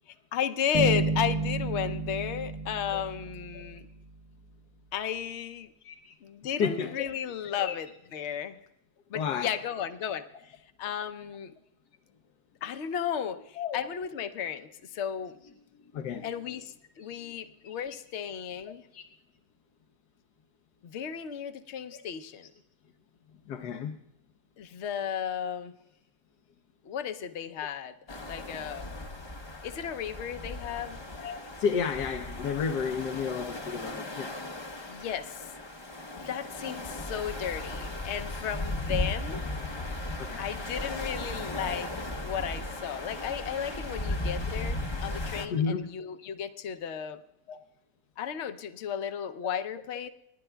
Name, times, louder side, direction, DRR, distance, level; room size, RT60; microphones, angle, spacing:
voice 1, 0.3-3.9 4.9-5.7 6.2-7.9 8.1-8.6 9.1-11.5 12.6-15.4 16.2-18.8 20.8-22.5 24.6-25.7 26.8-28.9 29.6-31.0 34.9-35.5 36.2-39.4 40.4-47.2 48.2-50.1, left 8 dB, 55° left, 9 dB, 0.8 m, -34 dB
Bass guitar, 0.7-3.8, right 3 dB, 60° right, 1.8 m, -31 dB
voice 2, 5.8-6.1 6.6-7.1 7.6-7.7 9.1-9.5 13.6-13.9 15.7-16.6 17.0-17.4 17.6-17.7 18.9-19.0 21.9-22.0 23.5-24.0 31.2-34.4 40.2-40.4 45.5-45.9 47.5-47.6, left 6 dB, 85° left, 4 dB, 1.4 m, -32 dB
sound 1, 28.1-45.5, left 2 dB, 30° left, 0.5 m, -36 dB
28.0 x 11.0 x 2.3 m, 0.83 s
omnidirectional pair, 1.7 m